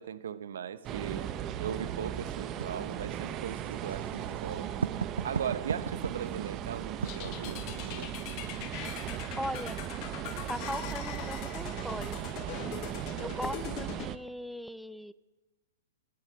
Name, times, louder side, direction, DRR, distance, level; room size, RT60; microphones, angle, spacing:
voice 1, 0.0-1.3 1.6-4.7 5.2-7.7 13.2-13.3, right 8 dB, 70° right, 0.8 m, -38 dB
sound 1, 0.8-14.2, right 10 dB, 30° right, 0.7 m, -37 dB
Writing, 2.6-8.5, right 6 dB, 85° right, 0.4 m, -38 dB
sound 2, 7.0-14.1, left 13 dB, 40° left, 0.7 m, -42 dB
voice 2, 9.4-9.8 10.5-12.2 13.2-15.1, equal, ahead, 0.4 m, -38 dB
14.0 x 7.9 x 8.8 m
hypercardioid pair, 125°, 0 cm